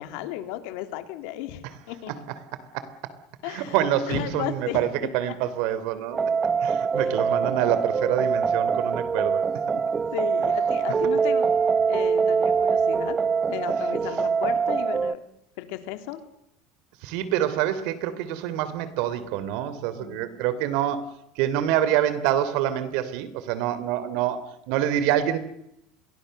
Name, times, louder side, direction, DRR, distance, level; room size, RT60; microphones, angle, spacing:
voice 1, 0.0-2.1 3.4-3.8 4.1-4.8 6.9-7.0 9.7-9.8 10.1-11.5 11.9-13.2 13.5-15.2 15.6-16.2 20.0-20.3, left 13 dB, 70° left, 8 dB, 2.9 m, -34 dB
voice 2, 2.7-3.1 3.4-6.3 6.6-9.4 17.0-25.4, right 11 dB, 65° right, 14 dB, 3.2 m, -26 dB
sound 1, 6.1-15.1, right 5 dB, 20° right, 0.8 m, -24 dB
29.0 x 23.0 x 6.7 m, 0.81 s
supercardioid pair, 135°, 0 cm